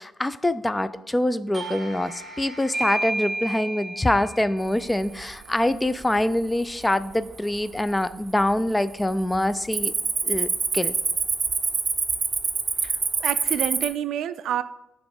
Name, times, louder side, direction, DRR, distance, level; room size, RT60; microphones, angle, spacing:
voice 1, 0.0-9.9 10.2-10.9, left 1 dB, 10° left, 15 dB, 0.3 m, -25 dB
Doorbell, 1.5-6.8, right 1 dB, 20° right, 1.7 m, -34 dB
Cricket, 4.9-5.3 5.8-6.2 6.8-6.9 7.5-8.1 8.4-8.7 9.0-13.9, right 5 dB, 40° right, 0.6 m, -25 dB
voice 2, 12.8-14.6, right 10 dB, 75° right, 14 dB, 0.3 m, -28 dB
8.1 x 3.0 x 5.2 m, 0.90 s
cardioid pair, 90°, 0 cm